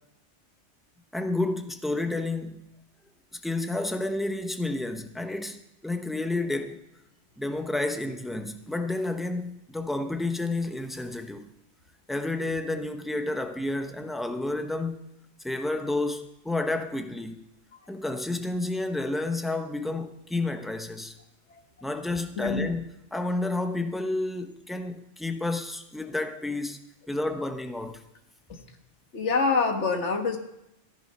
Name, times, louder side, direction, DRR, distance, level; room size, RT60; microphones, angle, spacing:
voice 1, 1.1-2.7 3.3-6.8 7.4-11.5 12.1-15.0 15.4-17.4 17.9-21.2 21.8-26.8 27.1-28.0, left 2 dB, ahead, 0.8 m, -30 dB
voice 2, 22.4-22.7 28.5-28.6 29.1-30.4, left 4 dB, 75° left, 1.8 m, -25 dB
14.5 x 10.5 x 5.5 m
omnidirectional pair, 1.2 m